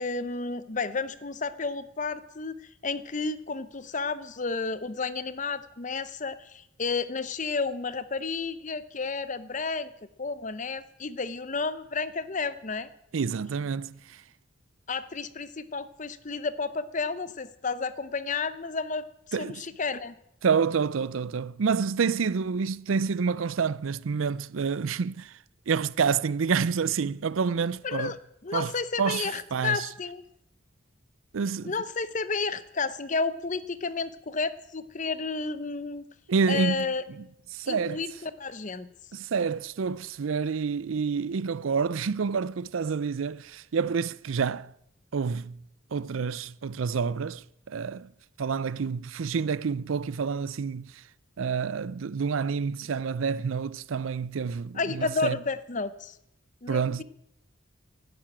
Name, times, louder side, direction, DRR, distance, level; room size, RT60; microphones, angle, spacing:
voice 1, 0.0-2.6 2.8-9.9 10.2-12.9 14.9-20.1 27.8-28.2 28.4-30.2 31.6-36.0 36.5-37.0 37.7-38.9 54.7-56.2 56.6-57.0, left 4 dB, 40° left, 0.8 m, -31 dB
voice 2, 13.1-14.2 19.3-19.6 20.4-25.3 25.7-28.1 28.5-28.7 29.0-29.9 31.3-31.7 36.3-36.9 37.5-38.0 39.1-44.7 45.1-45.6 45.9-48.1 48.4-51.0 51.4-55.4 56.7-57.0, right 5 dB, 75° right, 0.5 m, -28 dB
12.0 x 10.5 x 8.7 m
head